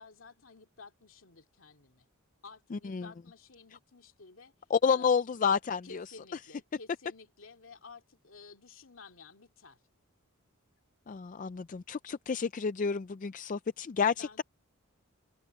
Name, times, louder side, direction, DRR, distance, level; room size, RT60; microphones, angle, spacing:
voice 1, 0.0-2.1 2.4-4.5 4.9-5.1 5.8-9.8 14.0-14.4, left 4 dB, 65° left, 2.4 m, -53 dB
voice 2, 2.7-3.1 4.7-6.0 11.1-14.4, left 6 dB, 35° left, 0.4 m, -30 dB
head